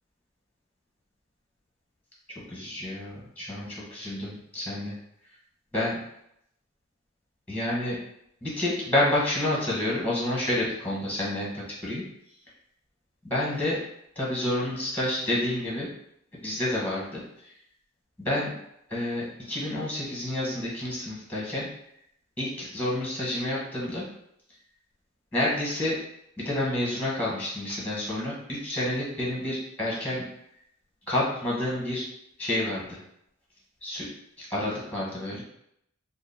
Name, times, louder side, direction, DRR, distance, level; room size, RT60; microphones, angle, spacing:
voice 1, 2.5-5.0 5.7-6.0 7.5-8.0 8.4-12.0 13.2-13.8 14.2-15.9 16.4-17.5 18.2-18.5 18.9-21.7 22.4-24.1 25.3-26.0 26.4-30.2 31.1-32.0 32.4-33.0 33.8-34.1 34.4-35.4, left 1 dB, 5° left, -5 dB, 1.0 m, -29 dB
3.7 x 2.0 x 3.8 m, 0.75 s
head